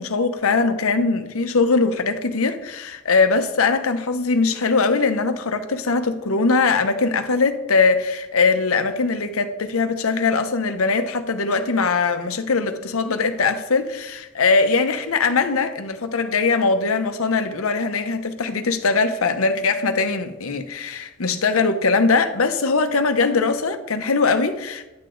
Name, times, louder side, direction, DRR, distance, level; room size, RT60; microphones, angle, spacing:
voice 1, 0.0-24.9, left 4 dB, 70° left, 8 dB, 0.8 m, -21 dB
10.5 x 6.7 x 3.9 m, 1.0 s
head